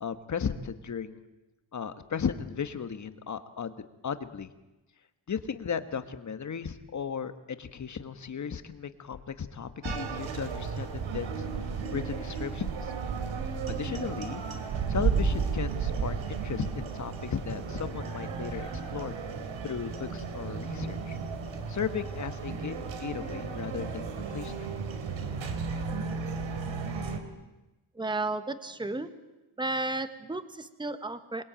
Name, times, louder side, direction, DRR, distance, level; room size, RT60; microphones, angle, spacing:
voice 1, 0.0-1.2 1.7-3.7 4.0-4.5 5.3-11.4 11.9-12.9 13.7-14.4 14.9-19.1 19.6-21.2 21.7-24.5, left 7 dB, 40° left, 10 dB, 1.5 m, -35 dB
sound 1, 9.8-27.2, right 5 dB, 85° right, 3.2 m, -33 dB
voice 2, 27.9-29.1 29.6-31.4, right 2 dB, 10° right, 11 dB, 1.2 m, -33 dB
27.0 x 21.0 x 8.9 m, 1.1 s
wide cardioid pair, 160°, 45 cm